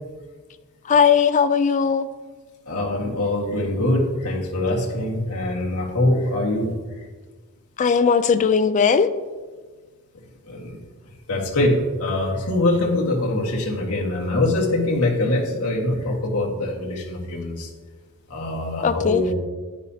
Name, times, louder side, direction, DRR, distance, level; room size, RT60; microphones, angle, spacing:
voice 1, 0.9-2.1 7.8-9.1 18.8-19.2, left 6 dB, 35° left, 0.4 m, -18 dB
voice 2, 2.7-6.7 10.5-10.7 11.3-17.7 18.3-19.3, left 1 dB, 75° left, 1.6 m, -23 dB
10.5 x 9.8 x 2.8 m
head